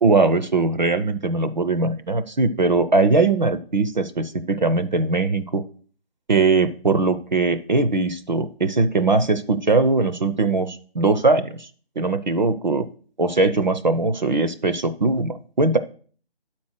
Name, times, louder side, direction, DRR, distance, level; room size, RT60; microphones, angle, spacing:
voice 1, 0.0-5.6 6.3-11.7 12.0-12.9 13.2-15.8, right 3 dB, 45° right, 10 dB, 0.6 m, -20 dB
8.4 x 4.3 x 6.2 m, 0.44 s
figure-of-eight pair, 160°, 31 cm